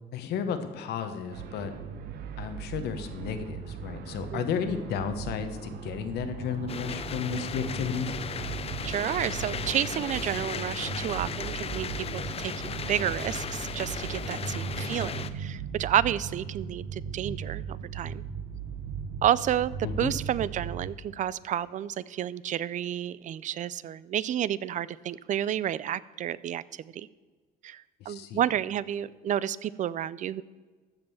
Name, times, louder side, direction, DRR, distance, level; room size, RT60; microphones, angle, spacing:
voice 1, 0.1-1.7 2.4-8.1 19.8-20.1 28.0-28.4, left 7 dB, 75° left, 8 dB, 1.3 m, -33 dB
sound 1, 1.3-20.9, right 7 dB, 70° right, 0.9 m, -38 dB
sound 2, 6.7-15.3, left 7 dB, 35° left, 0.6 m, -36 dB
voice 2, 8.8-18.2 19.2-27.1 27.6-30.4, right 11 dB, 50° right, 20 dB, 0.4 m, -30 dB
14.0 x 5.4 x 7.0 m, 1.4 s
cardioid pair, 110°, 17 cm